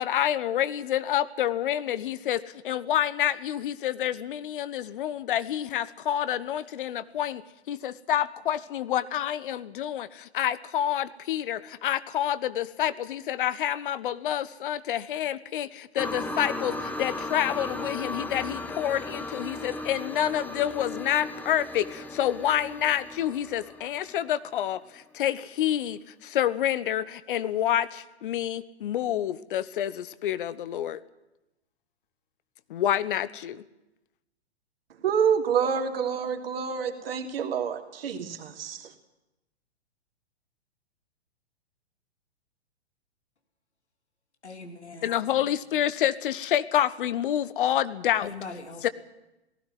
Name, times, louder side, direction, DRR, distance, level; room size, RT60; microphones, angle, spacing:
voice 1, 0.0-7.4 7.7-31.0 32.7-33.6 45.0-48.3 48.8-48.9, left 11 dB, 50° left, 1.2 m, -28 dB
sound 1, 16.0-24.8 25.4-25.5, left 2 dB, 5° left, 1.2 m, -36 dB
voice 2, 35.0-38.9, right 7 dB, 60° right, 3.1 m, -27 dB
voice 3, 44.4-45.5 48.2-48.9, left 3 dB, 80° left, 3.4 m, -42 dB
18.5 x 16.0 x 9.3 m
figure-of-eight pair, 115°, 33 cm